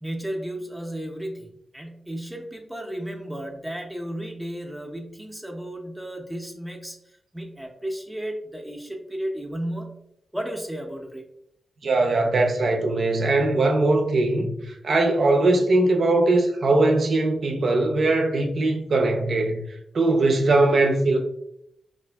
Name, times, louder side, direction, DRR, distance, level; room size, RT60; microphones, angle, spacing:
voice 1, 0.0-10.0 10.3-11.3, right 1 dB, 10° right, 0.5 m, -34 dB
voice 2, 11.8-19.6 19.9-21.2, right 2 dB, 70° right, 0.5 m, -21 dB
3.3 x 2.4 x 2.2 m
cardioid pair, 50°, 0 cm